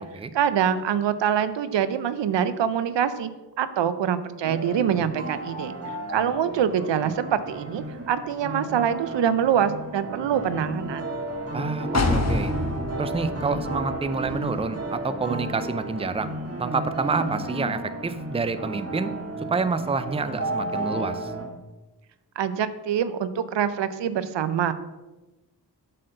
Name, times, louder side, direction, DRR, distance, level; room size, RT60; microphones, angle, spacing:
voice 1, 0.3-3.3 3.6-5.7 6.1-11.0 22.4-24.7, right 8 dB, 85° right, 13 dB, 0.6 m, -25 dB
sound 1, 4.4-21.5, right 2 dB, 35° right, 1.6 m, -33 dB
voice 2, 11.5-12.5 13.0-16.3 16.6-19.1 19.5-21.3, right 4 dB, 15° right, 12 dB, 0.5 m, -28 dB
sound 2, 11.9-15.7 16.1-16.2, left 2 dB, 40° left, 1.1 m, -28 dB
7.5 x 4.4 x 6.5 m, 1.1 s
cardioid pair, 70°, 42 cm